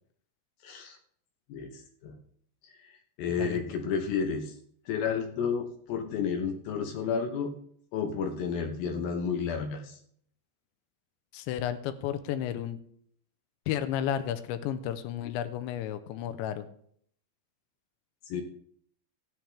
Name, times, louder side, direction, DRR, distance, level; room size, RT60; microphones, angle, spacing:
voice 1, 0.6-1.0 1.5-2.2 2.6-4.6 4.9-7.6 7.9-10.0 18.2-18.4, left 6 dB, 70° left, 4 dB, 2.4 m, -32 dB
voice 2, 11.3-12.8 13.7-16.6, left 10 dB, 85° left, 10 dB, 3.0 m, -32 dB
16.0 x 10.5 x 3.4 m, 0.65 s
omnidirectional pair, 5.2 m